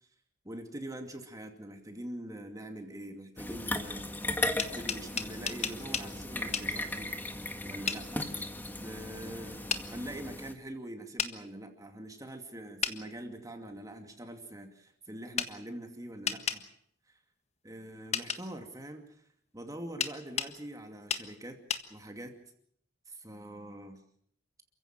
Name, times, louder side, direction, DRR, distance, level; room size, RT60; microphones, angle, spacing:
voice 1, 0.4-7.1 7.6-8.3 8.8-16.6 17.1-17.2 17.6-19.2 19.5-21.6 21.9-22.4 23.1-24.0, right 1 dB, 20° right, 5 dB, 2.4 m, -44 dB
sound 1, 3.4-10.5, left 1 dB, 10° left, 1.8 m, -37 dB
sound 2, 4.2-6.1 6.5-6.7 7.9-8.0 9.7-9.8 11.2-11.3 12.8-13.0 15.4-15.5 16.3-16.6 18.1-18.4 20.0-20.5 21.1-21.3 21.7-21.8, left 7 dB, 35° left, 1.5 m, -32 dB
28.5 x 16.0 x 7.5 m, 0.65 s
head